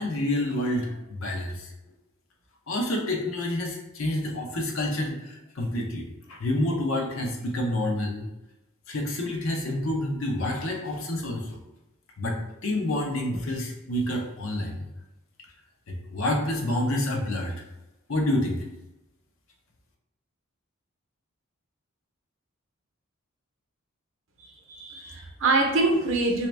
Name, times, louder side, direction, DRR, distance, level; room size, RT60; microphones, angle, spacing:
voice 1, 0.0-1.7 2.7-8.3 8.9-11.6 12.2-14.9 15.9-17.6 18.1-18.6, left 1 dB, 65° left, 1 dB, 0.7 m, -28 dB
voice 2, 24.4-26.5, right 2 dB, 60° right, 1 dB, 0.7 m, -25 dB
3.4 x 2.8 x 3.2 m, 0.95 s
head